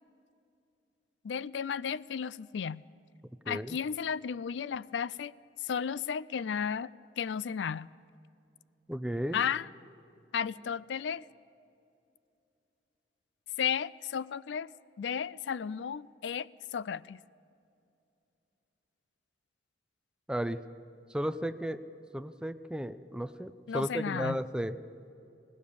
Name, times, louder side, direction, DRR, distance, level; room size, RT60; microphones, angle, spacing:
voice 1, 1.2-2.8 3.5-5.3 5.6-6.9 7.2-7.9 9.3-9.7 10.3-11.3 13.6-17.2 23.7-24.4, left 7 dB, 85° left, 20 dB, 0.4 m, -34 dB
voice 2, 3.5-3.8 8.9-9.4 20.3-20.6 21.1-21.8 22.1-24.7, equal, 5° right, 11 dB, 0.6 m, -34 dB
21.5 x 18.5 x 6.9 m, 2.6 s
head